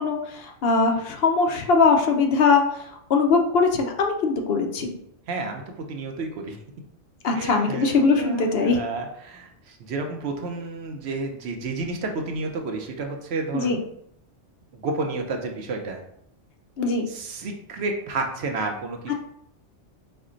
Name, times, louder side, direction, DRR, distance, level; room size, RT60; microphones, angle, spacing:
voice 1, 0.0-5.0 7.2-8.8 13.5-13.8 16.8-17.1, left 4 dB, 60° left, 3 dB, 0.8 m, -21 dB
voice 2, 5.3-5.6 5.9-6.6 7.3-13.8 14.7-16.0 17.1-19.1, right 3 dB, 65° right, 3 dB, 0.8 m, -31 dB
4.3 x 2.2 x 3.7 m, 0.72 s
omnidirectional pair, 1.2 m